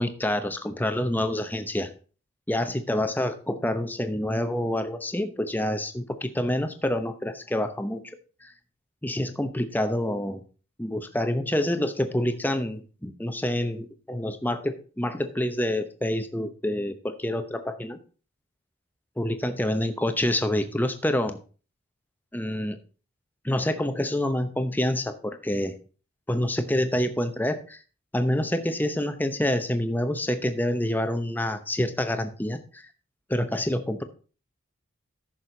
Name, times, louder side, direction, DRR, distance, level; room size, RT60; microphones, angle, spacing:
voice 1, 0.0-1.9 2.5-8.0 8.4-8.5 9.0-10.4 10.8-18.0 19.2-21.4 22.3-22.8 23.4-25.8 26.3-27.8 28.1-32.9 33.3-34.0, left 1 dB, 10° left, 8 dB, 0.8 m, -27 dB
14.0 x 6.4 x 3.9 m, 0.37 s
head